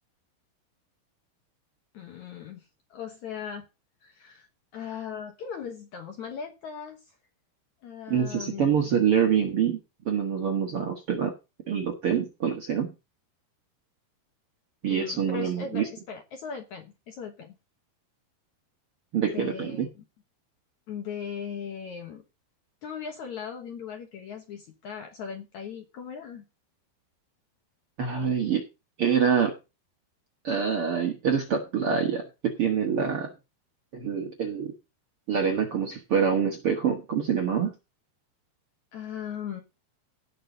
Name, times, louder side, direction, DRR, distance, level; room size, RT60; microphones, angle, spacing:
voice 1, 1.9-3.7 4.0-4.5 4.7-7.0 7.8-8.9 14.8-17.5 19.2-19.9 20.9-22.2 22.8-26.5 38.9-39.6, left 7 dB, 65° left, 5 dB, 2.0 m, -38 dB
voice 2, 8.1-9.8 10.0-11.3 11.7-12.9 14.8-15.9 19.1-19.9 28.0-28.6 29.0-29.5 30.4-33.3 33.9-34.7 35.3-37.7, right 7 dB, 50° right, 3 dB, 1.7 m, -26 dB
17.5 x 6.0 x 3.9 m, 0.27 s
omnidirectional pair, 4.7 m